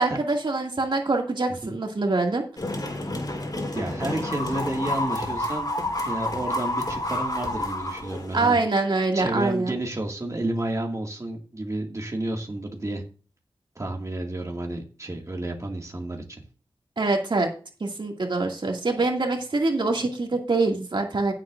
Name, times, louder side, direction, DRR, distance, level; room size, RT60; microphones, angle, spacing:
voice 1, 0.0-2.4 8.3-9.7 17.0-17.5 17.8-21.3, right 3 dB, 60° right, 2 dB, 2.2 m, -24 dB
sound 1, 2.6-8.6, left 1 dB, 45° left, 4.1 m, -29 dB
voice 2, 3.7-5.7 6.0-8.6 9.1-13.0 13.8-16.4, right 1 dB, 35° right, 1 dB, 2.1 m, -31 dB
16.0 x 7.6 x 2.5 m, 0.37 s
wide cardioid pair, 70°, 9 cm